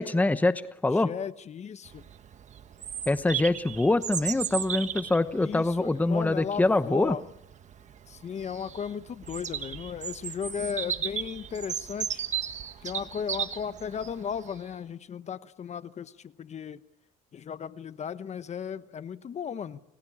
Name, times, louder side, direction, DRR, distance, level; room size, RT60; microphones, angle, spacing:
voice 1, 0.0-1.1 3.1-7.2, left 2 dB, 10° left, 0.9 m, -25 dB
voice 2, 1.0-2.0 5.4-7.2 8.1-12.2 12.8-16.8 17.3-19.8, left 7 dB, 40° left, 1.1 m, -35 dB
Bird vocalization bird call bird song, 1.9-14.6, right 8 dB, 45° right, 1.5 m, -36 dB
30.0 x 21.5 x 8.7 m
cardioid pair, 110°, 17 cm